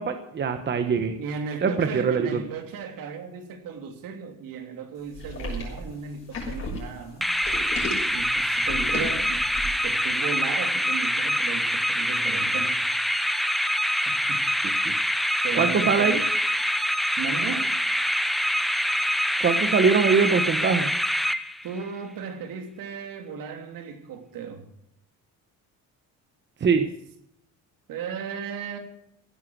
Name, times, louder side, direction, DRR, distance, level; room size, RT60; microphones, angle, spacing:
voice 1, 0.0-1.2 1.6-2.4 14.8-14.9 15.5-16.2 19.4-20.9 26.6-26.9, right 5 dB, 30° right, 1.1 m, -22 dB
voice 2, 1.2-7.3 8.1-9.5 9.8-12.8 14.3-14.4 15.4-16.2 17.2-17.8 21.6-24.7 27.9-28.8, right 6 dB, 65° right, 3.0 m, -35 dB
sound 1, 5.1-9.9, left 1 dB, 35° left, 6.4 m, -34 dB
sound 2, 7.2-21.9, equal, ahead, 0.7 m, -25 dB
16.5 x 10.5 x 6.1 m
cardioid pair, 150°, 36 cm